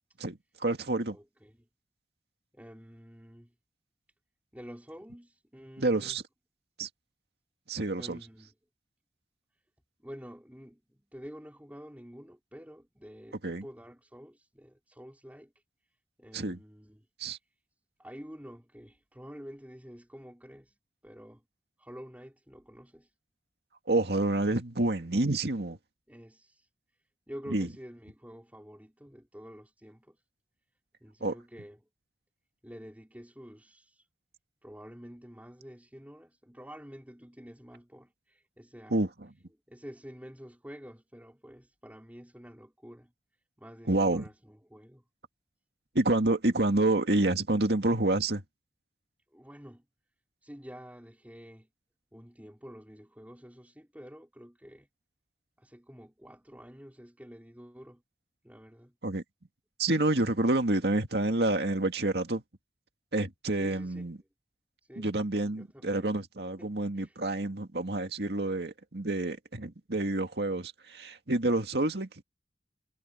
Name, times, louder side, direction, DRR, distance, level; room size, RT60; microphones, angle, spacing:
voice 1, 0.2-1.2 5.8-6.2 6.8-6.9 7.7-8.2 13.4-13.6 16.3-16.6 17.2-17.4 23.9-25.8 27.5-27.7 31.2-31.3 38.9-39.1 43.9-44.2 45.9-48.4 59.0-59.2 59.8-62.4 63.1-64.2 65.0-72.2, right 2 dB, 70° right, 2.1 m, -28 dB
voice 2, 1.1-1.7 2.5-3.5 4.5-6.2 8.0-8.5 10.0-15.6 16.2-17.1 18.0-20.8 21.0-21.4 21.8-23.1 26.1-26.7 27.3-30.2 31.0-31.8 32.6-34.1 34.6-39.0 39.7-43.1 43.6-45.0 49.3-49.8 50.4-51.7 52.1-54.9 55.6-58.0 58.4-58.9 63.5-64.1 64.8-65.1 65.6-66.1 66.6-67.2, equal, 10° right, 4.9 m, -49 dB
head